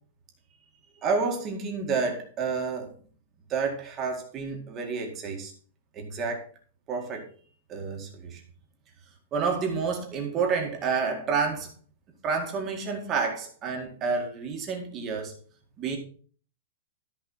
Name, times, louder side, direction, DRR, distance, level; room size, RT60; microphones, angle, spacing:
voice 1, 1.0-2.9 3.5-5.5 5.9-6.5 6.9-7.2 7.7-8.4 9.3-11.7 12.2-15.3 15.8-16.0, right 5 dB, 20° right, 1 dB, 2.0 m, -29 dB
14.0 x 5.4 x 5.6 m, 0.42 s
supercardioid pair, 180°, 0 cm